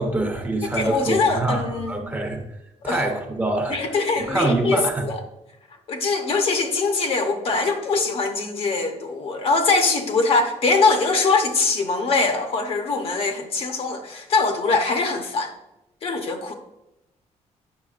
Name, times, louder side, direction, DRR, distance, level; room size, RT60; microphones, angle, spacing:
voice 1, 0.0-2.4 2.8-3.8 4.2-5.0, right 2 dB, 15° right, 3 dB, 0.8 m, -24 dB
voice 2, 0.7-2.0 2.8-3.0 3.7-5.2 5.9-15.5 16.0-16.5, left 3 dB, 50° left, 5 dB, 0.8 m, -22 dB
8.6 x 6.2 x 2.4 m, 0.89 s
cardioid pair, 145°, 12 cm